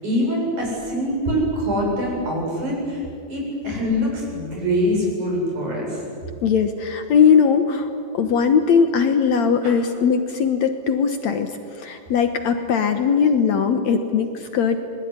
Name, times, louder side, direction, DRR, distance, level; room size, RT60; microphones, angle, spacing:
voice 1, 0.0-6.0 9.6-9.7, equal, 60° right, -2 dB, 9.2 m, -24 dB
voice 2, 6.4-14.9, left 6 dB, 65° left, 7 dB, 2.2 m, -19 dB
27.0 x 21.5 x 9.8 m, 2.6 s
omnidirectional pair, 3.9 m